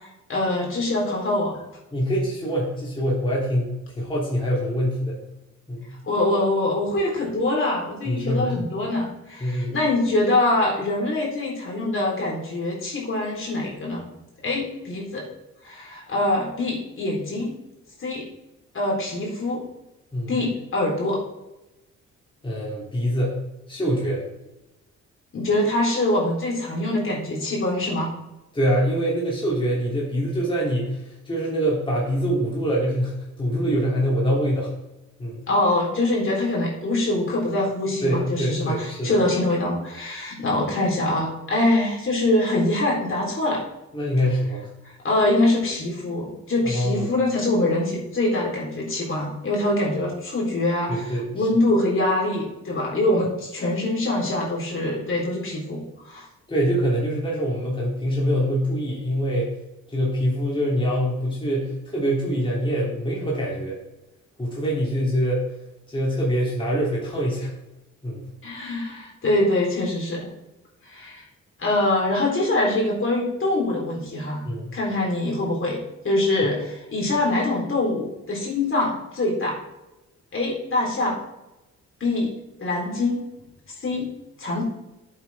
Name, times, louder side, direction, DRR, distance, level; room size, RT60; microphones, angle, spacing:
voice 1, 0.3-1.6 6.0-14.0 14.4-15.2 15.6-17.5 18.0-18.3 18.7-19.7 20.3-21.2 25.3-28.1 35.5-43.6 45.0-56.2 68.4-70.3 70.8-71.2 71.6-74.5 74.7-75.8 76.0-79.6 80.3-81.2 82.0-82.3 82.6-83.2 83.8-84.1 84.4-84.6, left 2 dB, 45° left, -3 dB, 4.2 m, -24 dB
voice 2, 1.9-3.7 3.9-5.2 5.7-5.9 8.0-8.5 9.4-9.7 20.1-20.3 22.4-23.4 23.7-24.2 28.5-34.7 35.2-35.4 38.0-39.2 43.9-44.7 46.6-47.1 50.9-51.5 56.5-59.5 59.9-63.8 64.4-65.4 65.9-67.5 68.0-68.2 74.4-74.7, equal, 15° left, -5 dB, 3.4 m, -24 dB
11.0 x 8.3 x 3.7 m, 0.95 s
cardioid pair, 90°, 30 cm